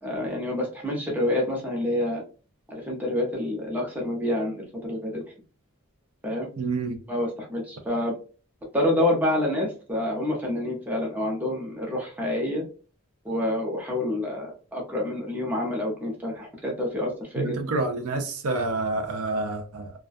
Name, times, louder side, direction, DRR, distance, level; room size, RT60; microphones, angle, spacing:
voice 1, 0.0-2.2 2.7-5.2 6.2-6.5 7.1-8.1 8.7-12.6 13.2-17.6, left 1 dB, 10° right, 0.6 m, -27 dB
voice 2, 6.6-7.0 17.4-19.9, right 3 dB, 80° right, 0.5 m, -28 dB
2.3 x 2.2 x 2.5 m
head